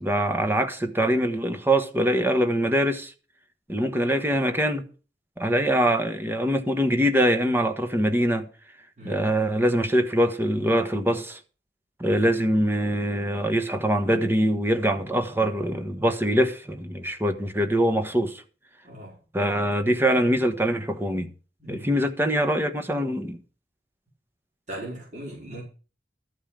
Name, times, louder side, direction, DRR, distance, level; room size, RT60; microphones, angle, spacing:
voice 1, 0.0-3.1 3.7-4.8 5.4-8.5 9.0-11.4 12.0-18.4 19.3-21.3 21.7-23.4, equal, 15° right, 1.3 m, -23 dB
voice 2, 18.8-19.2 21.6-21.9 24.7-25.6, right 1 dB, 45° right, 5.4 m, -38 dB
13.5 x 5.6 x 8.8 m
head